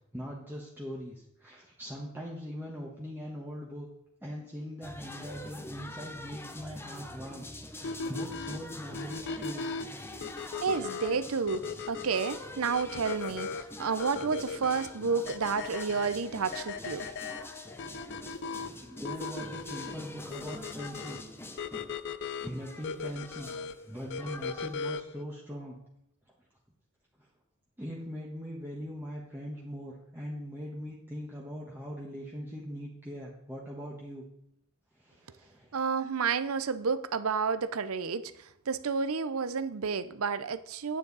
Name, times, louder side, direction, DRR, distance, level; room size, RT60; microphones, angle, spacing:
voice 1, 0.1-3.9 4.2-9.7 10.4-10.6 18.8-21.2 22.4-23.5 23.8-25.8 27.2-27.3 27.8-34.2 34.9-35.8, equal, 10° right, -4 dB, 1.3 m, -41 dB
sound 1, 4.8-24.8, left 1 dB, 10° left, 0.7 m, -45 dB
sound 2, 7.8-25.2, left 5 dB, 55° left, 0.5 m, -39 dB
voice 2, 10.6-17.1 35.7-41.0, right 5 dB, 75° right, 13 dB, 0.6 m, -31 dB
9.8 x 9.2 x 4.0 m, 0.78 s
head